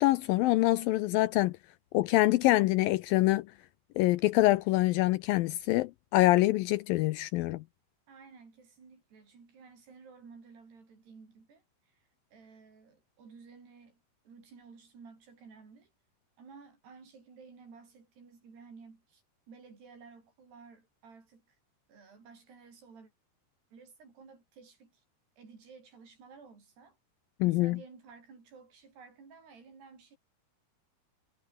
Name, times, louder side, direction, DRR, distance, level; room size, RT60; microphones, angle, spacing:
voice 1, 0.0-1.5 1.9-3.5 4.0-7.6 27.4-27.8, left 18 dB, 85° left, 2.1 m, -25 dB
voice 2, 8.1-15.9 16.4-21.5 21.9-23.1 23.7-25.0 25.4-27.0 27.4-30.2, right 5 dB, 80° right, 8.7 m, -54 dB
omnidirectional pair, 4.6 m